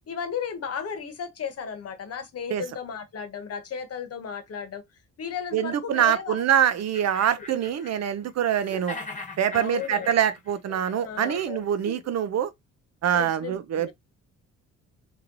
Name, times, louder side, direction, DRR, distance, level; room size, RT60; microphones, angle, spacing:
voice 1, 0.1-4.8 5.2-6.4 7.4-7.5 9.5-10.1 11.0-11.5 13.1-13.9, left 7 dB, 50° left, 1.1 m, -34 dB
voice 2, 5.5-9.0 9.4-12.5 13.0-13.9, right 9 dB, 60° right, 0.7 m, -24 dB
sound 1, 6.4-6.5 6.8-8.3 8.6-12.0, left 3 dB, 25° left, 1.2 m, -41 dB
3.1 x 2.9 x 3.8 m
cardioid pair, 90°, 30 cm